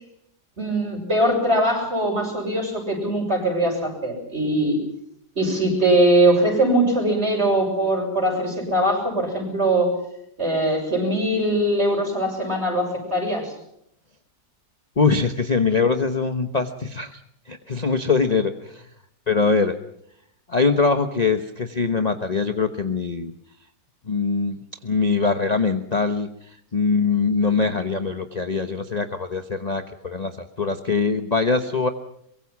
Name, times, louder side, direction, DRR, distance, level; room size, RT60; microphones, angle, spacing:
voice 1, 0.6-4.8 5.4-9.9 10.4-13.5, right 1 dB, 40° right, 2 dB, 7.4 m, -21 dB
voice 2, 15.0-17.2 17.5-18.9 19.3-19.7 20.5-23.3 24.1-24.6 24.8-26.3 26.7-31.9, left 4 dB, 30° left, 7 dB, 1.1 m, -22 dB
23.5 x 23.0 x 6.0 m, 0.73 s
omnidirectional pair, 1.8 m